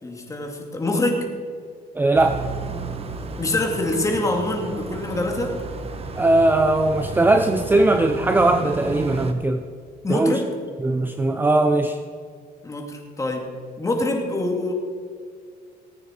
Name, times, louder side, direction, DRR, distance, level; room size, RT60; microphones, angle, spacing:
voice 1, 0.0-1.3 3.4-5.6 10.0-10.5 12.6-13.5 13.8-14.7, left 2 dB, 20° left, 1 dB, 2.5 m, -25 dB
voice 2, 1.9-2.4 6.2-9.6 10.1-10.4 10.8-12.0, right 2 dB, 10° right, 7 dB, 0.6 m, -19 dB
sound 1, 2.1-9.3, right 3 dB, 35° right, 1.2 m, -32 dB
19.0 x 9.1 x 4.5 m, 2.1 s
cardioid pair, 110°, 17 cm